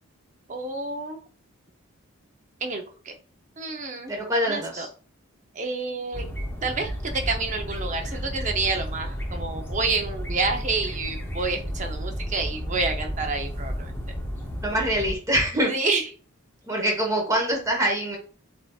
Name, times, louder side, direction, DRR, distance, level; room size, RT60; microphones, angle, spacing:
voice 1, 0.5-1.2 2.6-3.1 3.6-4.1 4.4-4.9 5.5-6.2 6.6-13.9 15.7-16.1, right 3 dB, 35° right, 4 dB, 0.6 m, -29 dB
voice 2, 4.1-4.9 14.6-15.7 16.7-18.2, right 1 dB, 15° right, 0 dB, 1.1 m, -24 dB
sound 1, 6.1-15.1, equal, 10° left, 0.6 m, -32 dB
7.6 x 2.7 x 2.3 m, 0.39 s
head